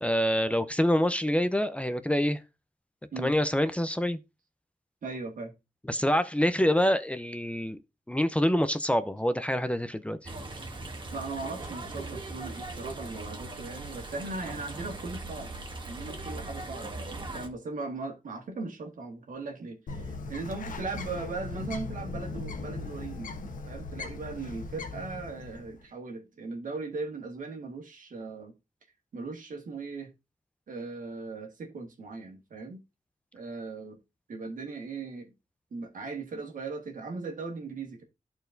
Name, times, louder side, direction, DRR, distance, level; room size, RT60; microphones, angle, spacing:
voice 1, 0.0-2.4 3.2-4.2 5.9-7.8 8.1-10.3, equal, 10° left, 0.6 m, -26 dB
voice 2, 5.0-5.5 11.1-15.6 15.9-23.3 23.6-28.5 29.1-30.1 30.7-32.8 33.3-34.0 34.3-35.3 35.7-38.0, right 3 dB, 80° right, 1.7 m, -38 dB
sound 1, 10.2-17.5, right 2 dB, 35° right, 1.4 m, -40 dB
Bird, 19.9-25.8, left 3 dB, 90° left, 1.0 m, -38 dB
13.0 x 4.4 x 2.6 m
cardioid pair, 70°, 13 cm